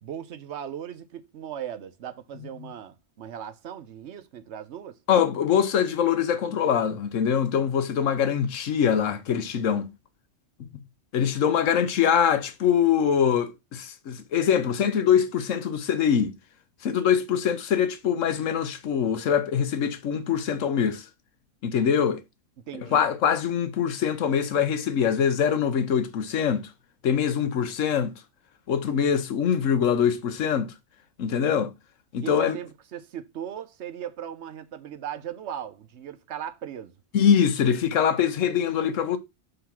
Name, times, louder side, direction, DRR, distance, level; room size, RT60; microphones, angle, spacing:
voice 1, 0.0-5.0 22.6-23.1 32.2-36.9, right 9 dB, 65° right, 1.0 m, -38 dB
voice 2, 5.1-9.9 11.1-16.3 16.8-21.0 21.6-22.2 22.9-26.7 27.0-28.1 28.7-30.7 31.2-31.7 32.1-32.6 37.1-39.2, left 8 dB, 85° left, 1.2 m, -23 dB
5.2 x 3.9 x 5.8 m
omnidirectional pair, 1.3 m